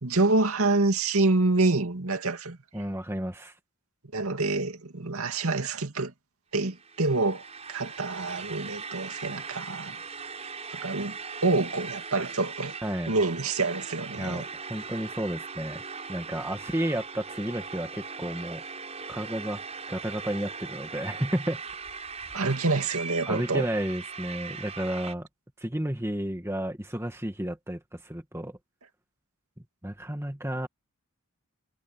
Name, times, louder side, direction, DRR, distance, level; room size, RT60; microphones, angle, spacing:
voice 1, 0.0-2.6 4.1-6.1 6.5-10.0 10.7-12.7 13.1-14.5 22.3-23.7, right 3 dB, 75° right, 2.3 m, -27 dB
voice 2, 2.7-3.5 12.8-13.1 14.2-15.8 16.1-18.6 19.1-19.6 19.9-21.6 23.3-25.3 25.6-28.6 29.8-30.7, right 1 dB, 10° right, 2.0 m, -32 dB
sound 1, 6.7-25.1, right 5 dB, 30° right, 7.1 m, -40 dB
head